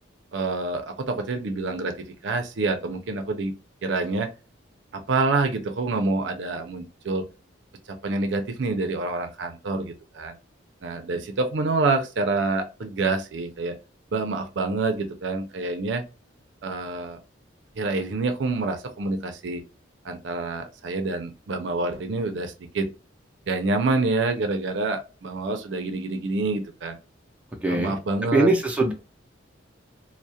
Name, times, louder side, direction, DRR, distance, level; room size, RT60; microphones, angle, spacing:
voice 1, 0.3-3.5 3.8-4.3 4.9-7.2 7.9-10.3 10.8-13.7 14.1-16.1 16.6-17.2 17.8-19.6 20.0-22.9 23.5-27.0 27.7-28.5, right 3 dB, 70° right, 6 dB, 0.5 m, -27 dB
voice 2, 27.6-28.0 28.3-28.9, right 2 dB, 5° right, 0 dB, 0.5 m, -21 dB
2.3 x 2.0 x 2.6 m, 0.32 s
head